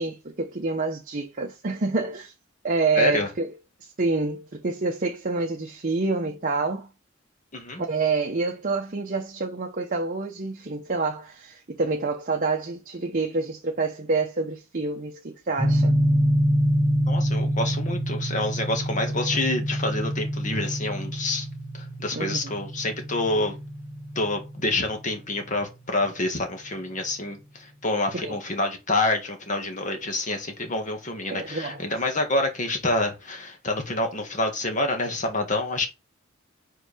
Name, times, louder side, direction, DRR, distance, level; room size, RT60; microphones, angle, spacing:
voice 1, 0.0-2.3 2.6-3.5 4.0-6.9 7.8-16.0 22.1-22.5 28.2-28.4 31.3-31.9, right 3 dB, 40° right, 0.8 m, -27 dB
voice 2, 2.9-3.3 7.5-7.8 17.1-21.5 21.7-23.5 24.1-35.9, left 2 dB, 40° left, 1.7 m, -27 dB
sound 1, 15.6-25.7, equal, 20° left, 1.7 m, -26 dB
4.7 x 4.6 x 5.0 m
head